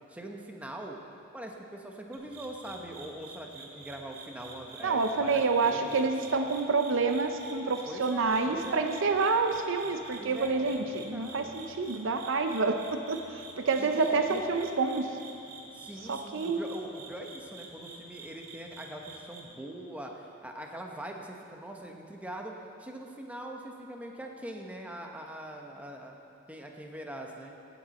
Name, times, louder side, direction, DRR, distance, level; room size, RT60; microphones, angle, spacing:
voice 1, 0.1-1.0 1.3-6.0 7.9-8.9 10.1-11.5 13.8-14.4 15.7-22.5 22.8-26.2 26.5-27.5, right 1 dB, 5° right, 1 dB, 0.9 m, -42 dB
sound 1, 2.1-19.4, right 3 dB, 80° right, 1.9 m, -48 dB
voice 2, 4.8-15.2 16.1-16.6, right 4 dB, 60° right, 6 dB, 0.6 m, -28 dB
16.0 x 9.1 x 4.2 m, 2.8 s
head